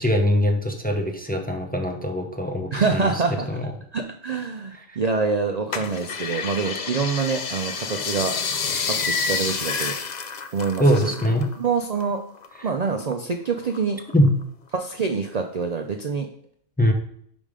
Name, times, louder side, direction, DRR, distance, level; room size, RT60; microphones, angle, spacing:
voice 1, 0.0-3.1 3.5-3.7 4.9-5.0 10.8-11.5 14.1-14.3 16.8-16.9, equal, 10° left, 2 dB, 0.7 m, -22 dB
voice 2, 2.7-3.5 3.9-8.3 8.9-9.9 10.5-11.1 11.6-12.2 12.6-14.0 14.7-16.3, right 5 dB, 45° right, 4 dB, 0.5 m, -26 dB
sound 1, 5.7-11.6 11.8-13.1 13.6-14.4 14.9-15.0, left 5 dB, 45° left, 0.7 m, -29 dB
5.4 x 5.0 x 5.0 m, 0.66 s
omnidirectional pair, 1.2 m